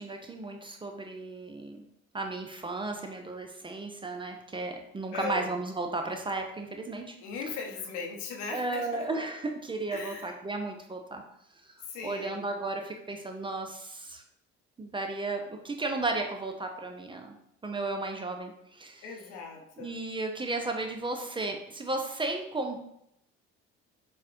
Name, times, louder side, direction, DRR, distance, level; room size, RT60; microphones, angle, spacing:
voice 1, 0.0-1.8 2.1-7.2 8.5-11.2 12.0-14.2 14.8-17.3 17.6-19.0 19.8-22.8, right 2 dB, 15° right, 4 dB, 0.4 m, -34 dB
voice 2, 5.1-5.5 7.2-9.2 9.9-10.3 11.8-12.5 19.0-20.0, left 5 dB, 70° left, 2 dB, 0.7 m, -38 dB
4.1 x 2.1 x 2.5 m, 0.75 s
hypercardioid pair, 55°, 31 cm